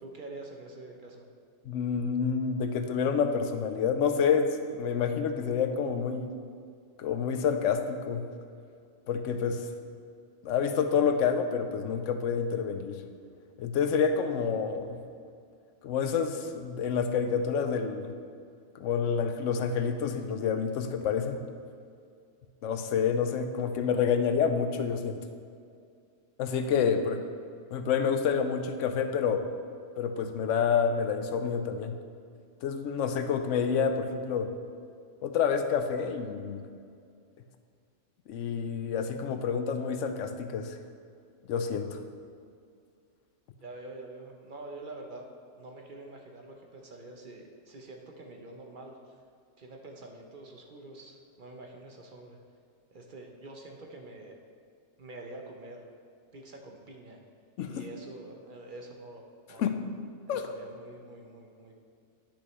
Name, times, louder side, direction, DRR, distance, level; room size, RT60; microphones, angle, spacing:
voice 1, 0.0-1.3 43.6-45.2 45.6-49.0 49.6-52.4 52.9-54.4 55.0-55.9 56.3-57.2 57.7-59.9 60.3-61.7, right 2 dB, 50° right, 1 dB, 0.8 m, -46 dB
voice 2, 1.7-6.3 7.0-8.2 9.1-9.7 10.4-13.0 13.6-15.0 15.8-18.2 18.7-21.4 22.6-25.2 26.4-27.2 27.7-29.5 30.0-32.0 32.6-34.5 35.2-36.6 38.3-40.8 41.5-42.0 57.6-57.8 59.6-59.7 60.3-60.5, left 6 dB, 90° left, 7 dB, 1.0 m, -28 dB
9.9 x 6.2 x 3.1 m, 2.3 s
omnidirectional pair, 1.3 m